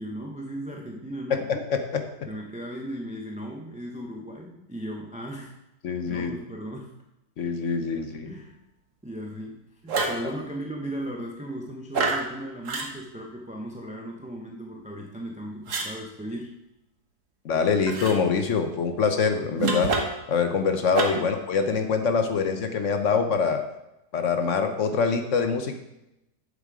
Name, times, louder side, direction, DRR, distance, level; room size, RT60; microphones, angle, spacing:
voice 1, 0.0-1.4 2.2-5.5 6.1-6.9 8.2-8.6 9.0-16.5 21.1-21.3, equal, 10° right, 0 dB, 0.5 m, -37 dB
voice 2, 1.3-2.0 5.8-6.3 7.4-8.3 17.4-19.9 20.3-23.6 24.1-25.8, left 5 dB, 55° left, 7 dB, 1.0 m, -24 dB
sound 1, 9.9-10.3 11.9-12.3 12.7-12.9 15.7-15.9 17.9-18.2 19.6-20.3 20.9-21.3, right 3 dB, 55° right, 1.4 m, -27 dB
7.4 x 7.3 x 4.8 m, 0.90 s
omnidirectional pair, 1.7 m